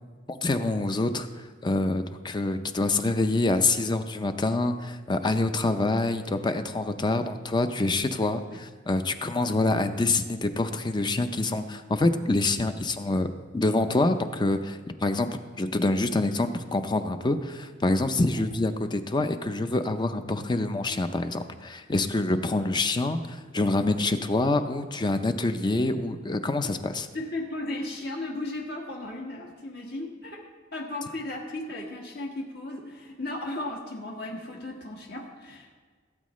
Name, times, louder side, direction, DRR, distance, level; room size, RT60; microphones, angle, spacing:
voice 1, 0.3-27.1, left 2 dB, 25° left, 9 dB, 0.5 m, -26 dB
voice 2, 27.1-35.7, left 2 dB, 55° left, -1 dB, 1.6 m, -36 dB
16.5 x 8.5 x 3.1 m, 1.5 s
head